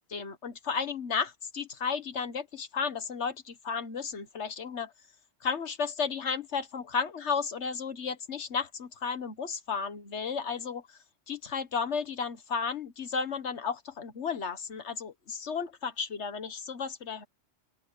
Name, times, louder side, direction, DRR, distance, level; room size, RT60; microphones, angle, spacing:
voice 1, 0.1-4.9 5.4-11.0 11.3-17.2, left 5 dB, 85° left, 1.7 m, -33 dB
open air
omnidirectional pair, 1.1 m